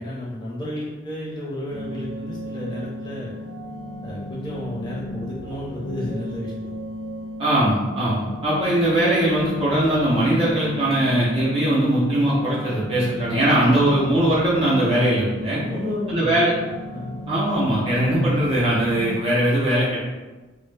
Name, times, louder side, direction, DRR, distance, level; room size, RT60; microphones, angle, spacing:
voice 1, 0.0-3.3 4.0-6.8 15.5-17.2, left 1 dB, 25° left, -6 dB, 0.6 m, -32 dB
sound 1, 1.7-19.2, equal, 70° right, 0.7 m, -34 dB
voice 2, 7.4-15.6 16.1-16.5 17.3-20.0, right 1 dB, 30° right, -8 dB, 0.5 m, -20 dB
2.1 x 2.0 x 3.1 m, 1.2 s
head